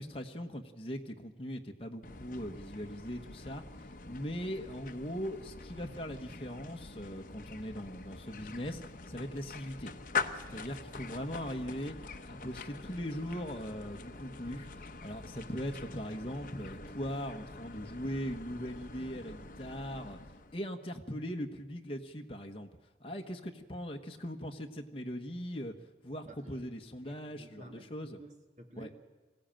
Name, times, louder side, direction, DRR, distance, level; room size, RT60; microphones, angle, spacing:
voice 1, 0.0-3.6 4.0-8.8 9.1-11.9 12.3-14.7 15.0-20.2 20.5-22.7 23.0-25.7 26.0-28.2 28.7-28.9, equal, 30° left, 2 dB, 1.2 m, -40 dB
sound 1, 2.0-20.6, left 4 dB, 50° left, 0.9 m, -44 dB
voice 2, 27.0-28.9, right 1 dB, 40° right, 4 dB, 2.2 m, -52 dB
22.5 x 16.0 x 9.0 m, 1.3 s
head